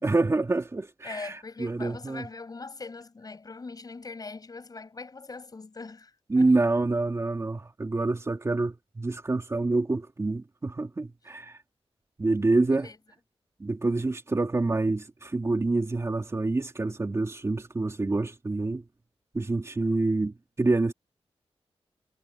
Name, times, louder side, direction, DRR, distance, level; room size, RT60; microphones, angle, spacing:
voice 1, 0.0-2.3 6.3-11.6 12.2-12.9 13.6-18.8 19.3-20.9, right 2 dB, 25° right, 2.5 m, -27 dB
voice 2, 1.0-6.1 6.4-6.5 12.8-13.0, left 4 dB, 40° left, 6.7 m, -41 dB
wide cardioid pair, 135°, 10 cm